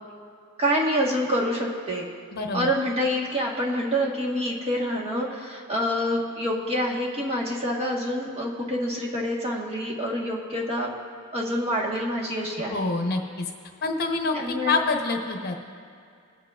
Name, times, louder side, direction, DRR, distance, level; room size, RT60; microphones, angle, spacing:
voice 1, 0.6-2.1 2.5-10.9 11.3-12.9 14.3-14.8, equal, 25° right, -2 dB, 1.4 m, -27 dB
voice 2, 2.3-2.7 12.7-13.4 13.8-15.5, left 3 dB, 45° left, 3 dB, 1.0 m, -26 dB
21.0 x 8.4 x 2.4 m, 2.3 s
head